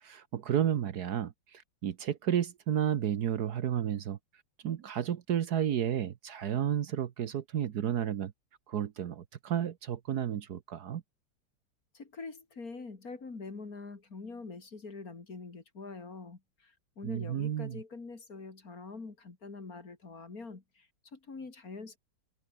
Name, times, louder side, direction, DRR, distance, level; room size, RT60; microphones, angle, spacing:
voice 1, 0.0-4.2 4.6-8.3 8.7-11.0 17.0-17.8, right 10 dB, 60° right, 1.4 m, -32 dB
voice 2, 11.9-22.0, left 4 dB, 50° left, 3.4 m, -45 dB
omnidirectional pair, 2.0 m